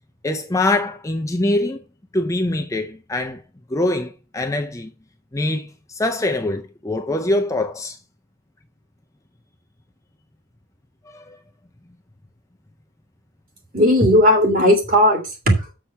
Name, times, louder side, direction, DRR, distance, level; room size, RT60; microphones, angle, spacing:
voice 1, 0.2-1.8 2.1-3.4 3.7-4.9 5.3-8.0 11.1-11.2, left 2 dB, 15° left, 0.5 m, -23 dB
voice 2, 13.7-15.7, equal, 35° right, 2.8 m, -16 dB
7.0 x 6.2 x 5.5 m
head